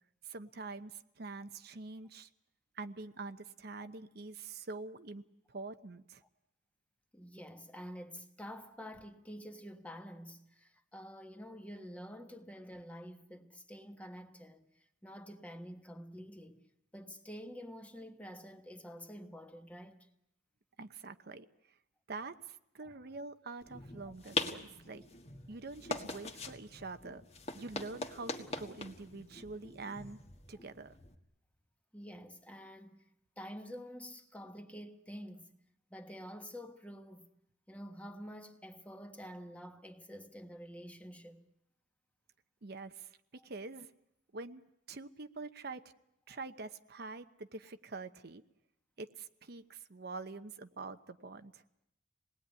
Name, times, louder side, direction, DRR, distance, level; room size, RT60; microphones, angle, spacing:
voice 1, 0.2-2.3 2.7-6.2 20.8-21.5 22.1-25.0 25.5-27.2 27.5-30.2 30.5-31.0 42.6-43.2 43.4-43.9 44.3-44.6 44.9-45.8 46.3-48.4 49.0-51.6, right 3 dB, 60° right, 0.9 m, -45 dB
voice 2, 7.1-16.7 16.9-20.1 22.8-23.0 31.9-33.0 33.4-35.6 35.9-37.3 37.7-41.4 43.4-43.5 46.3-46.4, equal, 10° left, 1.4 m, -48 dB
sound 1, 23.6-31.2, left 3 dB, 35° left, 1.7 m, -42 dB
26.5 x 19.5 x 9.6 m
head